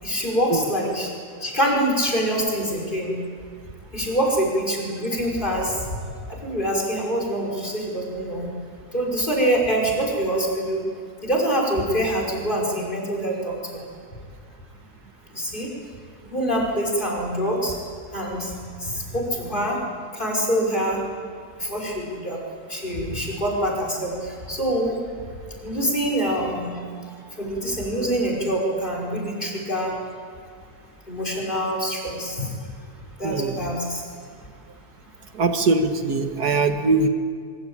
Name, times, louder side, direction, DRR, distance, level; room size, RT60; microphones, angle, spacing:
voice 1, 0.0-1.1 1.4-3.1 3.9-6.0 6.4-8.5 8.9-10.8 11.2-13.5 15.3-15.7 16.3-17.7 18.1-18.5 18.8-19.8 20.1-21.0 21.6-22.4 22.7-24.9 25.6-26.8 27.4-29.9 31.1-32.5 33.2-34.0, equal, 30° left, -1 dB, 5.8 m, -25 dB
voice 2, 33.2-33.6 35.3-37.1, right 3 dB, 80° right, 6 dB, 2.1 m, -21 dB
23.5 x 23.0 x 8.8 m, 2.1 s
omnidirectional pair, 1.7 m